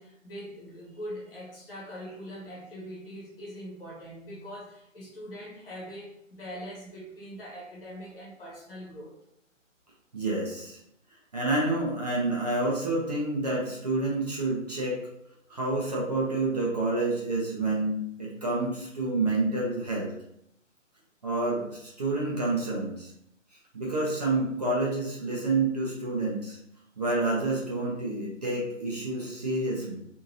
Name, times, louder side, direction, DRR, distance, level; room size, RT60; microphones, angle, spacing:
voice 1, 0.0-9.2, equal, 45° left, -4 dB, 1.2 m, -42 dB
voice 2, 10.1-10.8 11.3-15.0 15.5-20.1 21.2-23.1 23.7-26.6 27.0-30.0, right 2 dB, 30° right, -4 dB, 0.6 m, -28 dB
2.7 x 2.6 x 2.7 m, 0.75 s
figure-of-eight pair, 140°, 39 cm